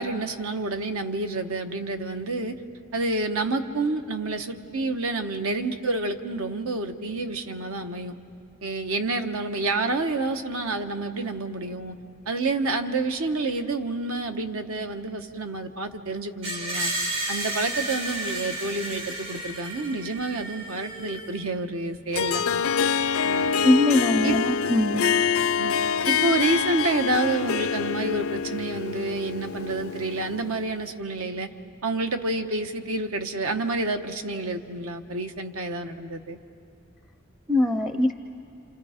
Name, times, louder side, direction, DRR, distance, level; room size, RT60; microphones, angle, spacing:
voice 1, 0.0-2.5 2.9-8.1 8.6-12.0 12.3-16.9 17.3-22.4 23.2-23.5 24.2-24.4 25.5-25.7 26.0-31.5 31.8-36.4, right 2 dB, 80° right, 6 dB, 1.1 m, -28 dB
Screech, 16.4-21.4, right 1 dB, 65° right, 7.1 m, -32 dB
Harp, 22.1-30.6, left 6 dB, 70° left, 0.5 m, -26 dB
voice 2, 23.6-25.1 37.5-38.1, left 1 dB, ahead, 5 dB, 0.5 m, -22 dB
29.0 x 27.5 x 5.0 m, 2.5 s
head